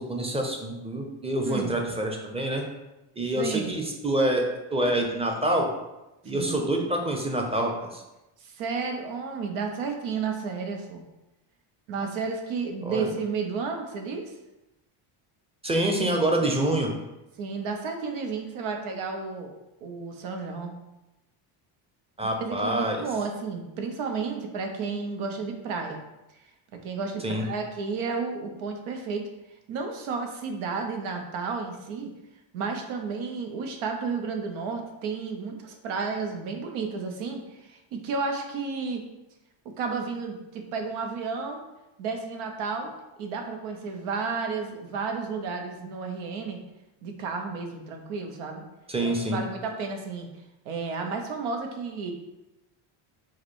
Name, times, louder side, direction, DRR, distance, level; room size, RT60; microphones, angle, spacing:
voice 1, 0.0-2.6 3.2-4.4 4.7-5.7 6.2-8.0 12.8-13.1 15.6-16.9 22.2-23.1 27.2-27.4 48.9-49.4, right 1 dB, 10° right, 1 dB, 0.7 m, -26 dB
voice 2, 3.3-3.8 6.3-6.6 8.4-11.0 11.9-14.3 17.4-19.5 19.8-20.7 22.2-26.0 26.7-29.3 29.7-32.1 32.5-39.0 39.8-41.6 42.0-42.9 43.2-46.6 47.0-48.6 49.0-50.3 50.6-52.1, right 4 dB, 75° right, 4 dB, 1.0 m, -32 dB
4.8 x 2.2 x 4.6 m, 0.97 s
cardioid pair, 100°, 50 cm